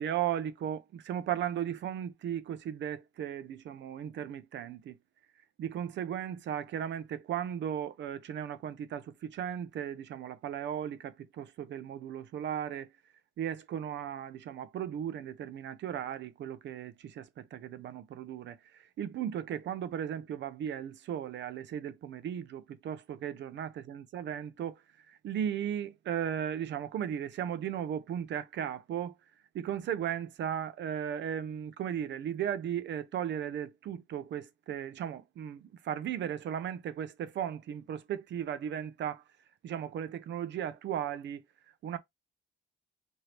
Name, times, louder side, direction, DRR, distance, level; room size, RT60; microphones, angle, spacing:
voice 1, 0.0-5.0 5.6-12.9 13.4-24.8 25.1-29.1 29.5-39.2 39.6-41.4 41.8-42.0, right 9 dB, 65° right, 0.6 m, -36 dB
3.1 x 2.7 x 2.9 m
cardioid pair, 90°, 20 cm